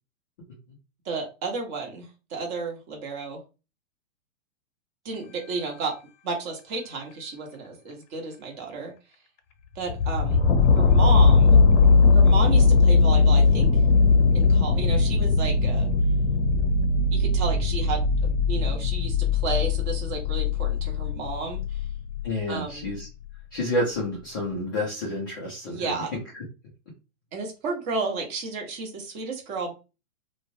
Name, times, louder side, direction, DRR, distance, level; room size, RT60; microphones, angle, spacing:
voice 1, 1.0-3.4 5.0-6.0 6.2-8.9 9.7-10.4 10.7-11.6 12.1-13.8 14.3-15.9 17.1-21.9 22.5-22.9 25.6-26.1 27.3-29.7, right 4 dB, 35° right, 1 dB, 1.1 m, -32 dB
sound 1, 9.9-22.3 22.9-23.0, left 4 dB, 65° left, 0.7 m, -19 dB
voice 2, 22.2-23.1 23.5-25.9, left 1 dB, 20° left, -5 dB, 0.3 m, -29 dB
3.1 x 2.1 x 2.7 m, 0.30 s
hypercardioid pair, 140°, 40 cm